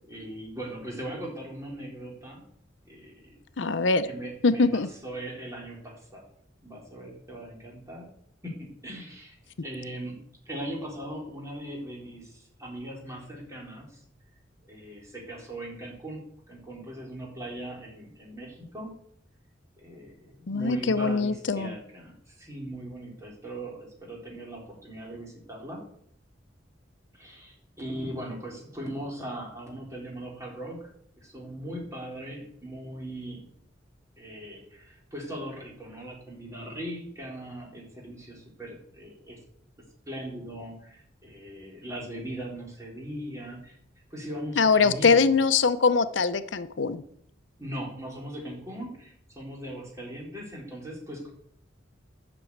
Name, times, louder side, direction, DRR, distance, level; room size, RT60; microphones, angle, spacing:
voice 1, 0.1-2.4 2.9-3.3 4.1-6.2 6.6-8.1 8.4-9.4 9.6-14.0 14.7-19.0 19.8-25.8 27.1-30.9 31.2-33.4 34.2-39.4 40.1-43.8 44.1-45.3 47.6-51.3, right 1 dB, 15° right, -2 dB, 3.9 m, -39 dB
voice 2, 3.6-4.1 4.4-4.9 20.5-21.7 44.6-47.0, left 4 dB, 80° left, 12 dB, 0.7 m, -22 dB
11.0 x 6.1 x 8.6 m, 0.69 s
head